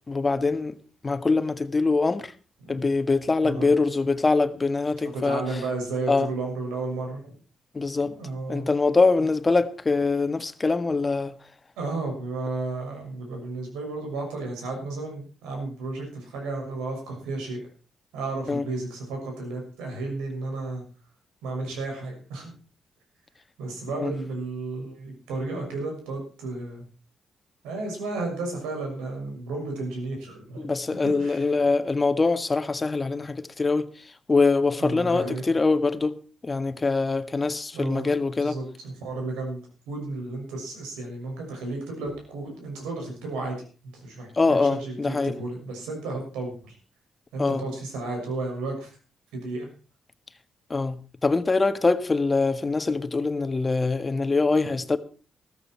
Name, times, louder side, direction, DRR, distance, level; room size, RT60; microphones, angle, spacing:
voice 1, 0.1-0.8 1.0-2.3 2.7-5.4 6.1-6.3 7.7-8.1 8.5-11.3 18.5-18.6 24.0-24.1 30.6-33.9 34.3-36.2 36.4-38.6 44.3-45.3 47.4-47.6 50.7-55.0, left 3 dB, 30° left, 1.6 m, -23 dB
voice 2, 5.1-7.3 8.0-8.7 11.8-17.6 18.1-20.8 21.4-22.5 23.6-26.9 27.6-30.7 31.2-31.5 34.8-35.5 37.7-38.1 38.4-43.6 43.9-46.8 47.3-48.9 49.3-49.7 54.6-54.7, right 3 dB, 80° right, 6.4 m, -33 dB
14.5 x 14.0 x 4.6 m
hypercardioid pair, 40°, 0 cm